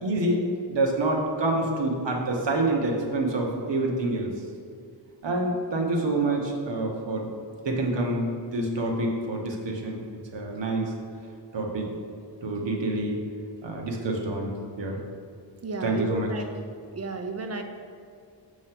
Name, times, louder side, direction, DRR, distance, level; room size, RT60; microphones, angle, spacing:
voice 1, 0.0-0.4 0.7-4.3 5.2-7.3 7.6-10.0 10.3-10.9 11.5-11.9 12.4-13.2 13.6-15.0 15.8-16.3, right 2 dB, 80° right, 0 dB, 1.0 m, -27 dB
voice 2, 15.6-16.5 16.9-17.6, right 3 dB, 35° right, 5 dB, 0.5 m, -32 dB
6.6 x 3.1 x 5.8 m, 2.3 s
wide cardioid pair, 115°, 43 cm